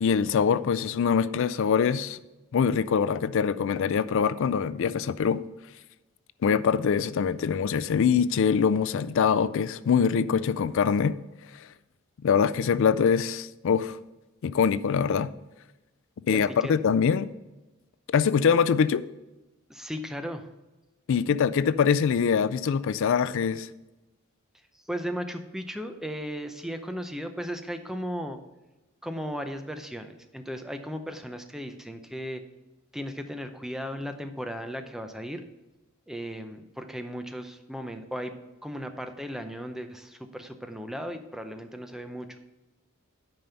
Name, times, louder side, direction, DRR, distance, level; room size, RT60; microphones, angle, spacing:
voice 1, 0.0-2.2 2.5-5.4 6.4-11.2 12.2-14.0 14.4-15.3 16.3-17.3 18.1-19.0 21.1-23.7, left 6 dB, 65° left, 0.4 m, -24 dB
voice 2, 16.3-16.7 19.7-20.5 24.9-28.4 29.0-32.4 32.9-35.4 36.1-42.4, equal, ahead, 0.6 m, -36 dB
9.0 x 5.4 x 5.6 m
head